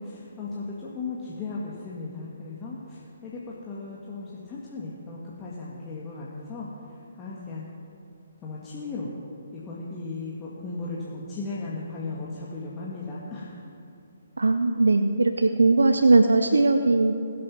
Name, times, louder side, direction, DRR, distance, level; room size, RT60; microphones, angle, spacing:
voice 1, 0.0-6.7 7.2-7.7 8.4-9.1 9.5-13.7, left 3 dB, 20° left, -6 dB, 1.8 m, -36 dB
voice 2, 14.4-17.1, right 3 dB, 80° right, 8 dB, 0.7 m, -19 dB
21.5 x 7.6 x 6.1 m, 2.7 s
figure-of-eight pair, 140°, 0 cm